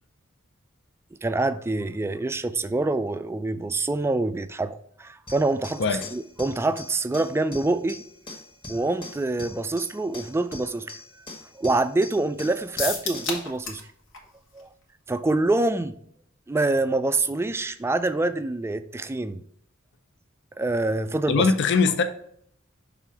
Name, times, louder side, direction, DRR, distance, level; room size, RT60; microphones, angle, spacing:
voice 1, 1.2-5.8 6.1-8.0 8.7-10.9 11.6-13.8 14.5-14.7 15.1-15.9 16.5-19.4 20.6-21.5, right 2 dB, 10° right, 0.3 m, -26 dB
sound 1, 5.3-13.4, left 2 dB, 25° left, 1.2 m, -42 dB
sound 2, 12.8-13.9 14.1-14.2 14.6-14.7, left 4 dB, 85° left, 1.5 m, -30 dB
voice 2, 21.3-22.0, left 4 dB, 60° left, 0.5 m, -21 dB
6.0 x 3.7 x 4.7 m
head